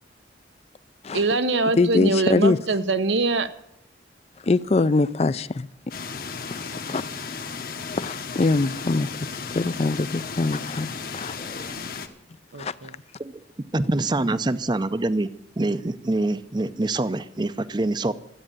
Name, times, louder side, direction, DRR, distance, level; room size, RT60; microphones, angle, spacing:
voice 1, 1.1-3.5 12.5-12.9, right 3 dB, 90° right, 0.9 m, -23 dB
voice 2, 1.7-2.6 4.5-5.7 6.5-7.0 8.0-9.1 9.5-11.7 12.6-12.7, left 3 dB, 35° left, 0.4 m, -23 dB
sound 1, 5.9-12.1, left 5 dB, 50° left, 1.1 m, -34 dB
voice 3, 13.7-15.3 15.6-18.1, right 2 dB, 25° right, 0.5 m, -25 dB
13.5 x 8.7 x 8.9 m
head